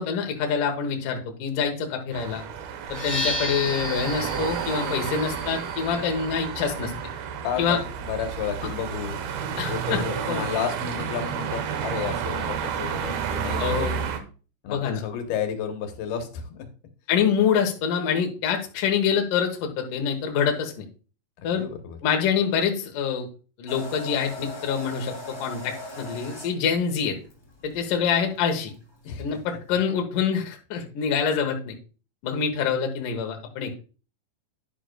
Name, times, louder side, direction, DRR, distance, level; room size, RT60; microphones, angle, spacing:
voice 1, 0.0-2.4 2.9-6.9 7.6-7.8 9.6-10.0 10.3-10.4 13.6-14.0 14.7-15.0 17.1-20.8 21.4-21.6 22.0-23.3 23.6-27.2 27.6-28.7 29.2-31.8 32.2-33.9, left 7 dB, 70° left, 3 dB, 2.7 m, -26 dB
sound 1, 2.1-14.2, right 7 dB, 85° right, 3.0 m, -31 dB
sound 2, 2.9-10.6, left 1 dB, 10° right, 4.8 m, -36 dB
voice 2, 7.4-9.2 9.7-14.0 14.6-16.7 21.4-22.0 29.0-29.4, left 8 dB, 90° left, 5 dB, 3.1 m, -32 dB
sound 3, 23.7-29.7, left 2 dB, 10° left, 2.3 m, -40 dB
10.5 x 10.5 x 2.3 m, 0.36 s
omnidirectional pair, 4.3 m